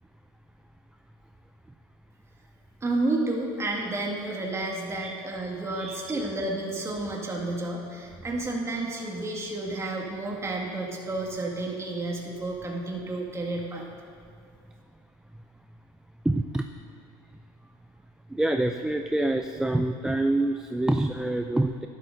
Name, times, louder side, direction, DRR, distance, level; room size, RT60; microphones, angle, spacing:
voice 1, 2.8-13.8, right 2 dB, 25° right, -2 dB, 2.0 m, -31 dB
voice 2, 5.7-6.2 16.2-16.7 18.3-21.9, right 1 dB, 5° right, 5 dB, 0.3 m, -26 dB
12.0 x 11.5 x 2.7 m, 2.3 s
supercardioid pair, 95°, 12 cm